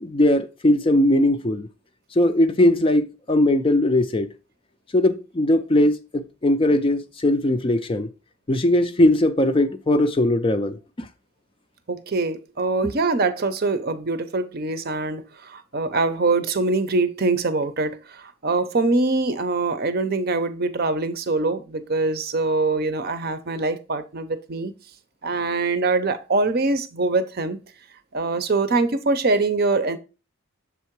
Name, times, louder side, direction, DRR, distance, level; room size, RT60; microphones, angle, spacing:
voice 1, 0.0-1.7 2.2-4.3 4.9-8.1 8.5-11.1, left 1 dB, 25° left, 0.4 m, -19 dB
voice 2, 11.9-24.7 25.2-27.6 28.1-30.0, right 3 dB, 45° right, 0.6 m, -23 dB
7.1 x 3.7 x 4.5 m
head